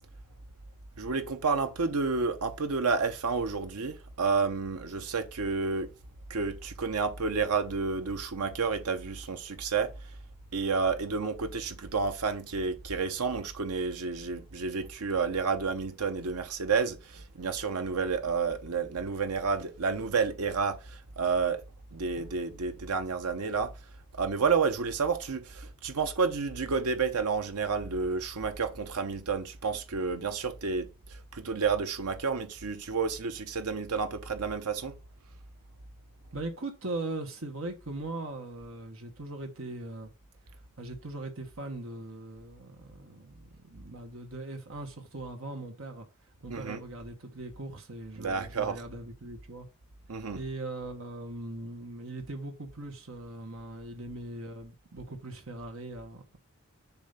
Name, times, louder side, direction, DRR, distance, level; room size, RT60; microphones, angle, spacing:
voice 1, 1.0-5.9 6.3-9.9 10.5-21.6 21.9-23.7 24.1-35.0 46.5-46.8 48.2-48.8 50.1-50.4, right 5 dB, 85° right, 0.8 m, -30 dB
voice 2, 36.3-40.1 40.8-46.1 46.4-49.7 50.3-56.2, right 2 dB, 65° right, 1.3 m, -40 dB
7.1 x 2.8 x 5.6 m
head